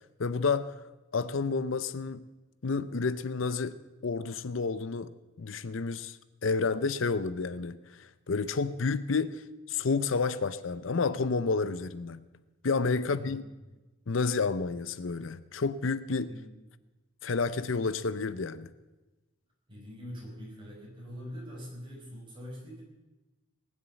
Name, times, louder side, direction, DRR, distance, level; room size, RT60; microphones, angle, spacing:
voice 1, 0.2-0.7 1.1-2.3 2.6-5.1 5.4-12.2 12.6-13.4 14.1-16.3 17.2-18.7, left 4 dB, 75° left, 0.6 m, -30 dB
voice 2, 12.9-13.7 16.2-16.5 19.7-22.8, equal, 25° right, 5.6 m, -44 dB
19.5 x 7.4 x 9.0 m
head